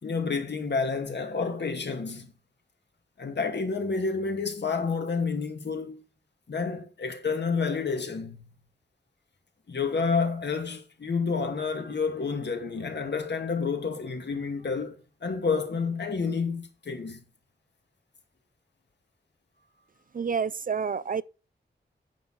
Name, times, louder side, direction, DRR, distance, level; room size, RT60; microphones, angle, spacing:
voice 1, 0.0-2.3 3.2-6.0 6.5-8.5 9.7-17.2, left 5 dB, 70° left, 2.3 m, -29 dB
voice 2, 20.1-21.2, right 6 dB, 50° right, 0.5 m, -28 dB
9.0 x 6.1 x 5.7 m
wide cardioid pair, 80°, 18 cm